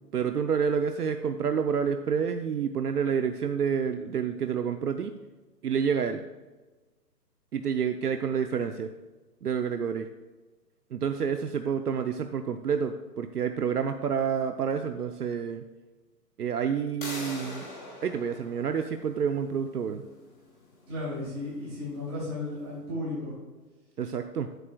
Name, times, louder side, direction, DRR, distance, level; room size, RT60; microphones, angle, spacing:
voice 1, 0.1-5.1 5.6-6.2 7.5-8.9 9.4-10.1 10.9-15.6 16.4-17.7 18.0-20.0 24.0-24.5, right 7 dB, 65° right, 7 dB, 0.6 m, -28 dB
sound 1, 17.0-22.6, left 1 dB, 30° left, 2.6 m, -44 dB
voice 2, 20.9-23.3, left 2 dB, 15° right, -7 dB, 2.8 m, -34 dB
13.5 x 8.2 x 2.3 m, 1.2 s
hypercardioid pair, 180°, 50 cm